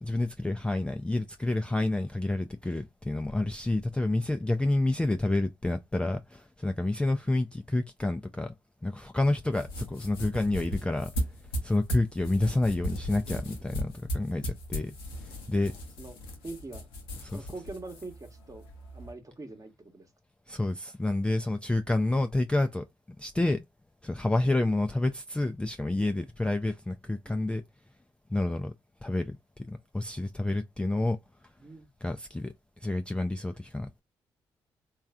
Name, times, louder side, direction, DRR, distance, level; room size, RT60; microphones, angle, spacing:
voice 1, 0.0-8.5 8.8-11.1 11.6-14.9 15.2-15.8 17.2-17.5 20.5-22.9 23.2-23.6 24.0-27.6 28.3-28.7 29.0-31.2 31.4-31.5 32.0-32.5 32.8-34.0, left 2 dB, 10° left, 0.3 m, -29 dB
sound 1, 9.4-19.1, equal, 90° left, 0.7 m, -37 dB
voice 2, 15.7-16.9 17.3-18.6 18.9-20.1 27.2-27.4 31.6-31.9, right 2 dB, 30° right, 1.0 m, -44 dB
3.1 x 2.3 x 2.3 m
hypercardioid pair, 40°, 12 cm